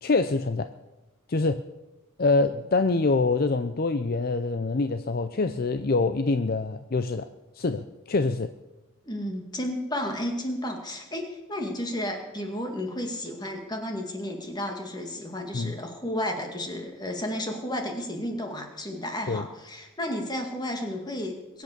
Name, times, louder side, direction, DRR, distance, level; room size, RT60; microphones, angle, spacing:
voice 1, 0.0-0.7 1.3-1.6 2.2-7.3 7.6-8.5 15.5-15.7 19.3-19.4, left 3 dB, 45° left, 10 dB, 0.5 m, -25 dB
voice 2, 9.1-21.6, left 1 dB, 20° left, 3 dB, 2.2 m, -32 dB
22.0 x 8.5 x 6.8 m, 1.1 s
head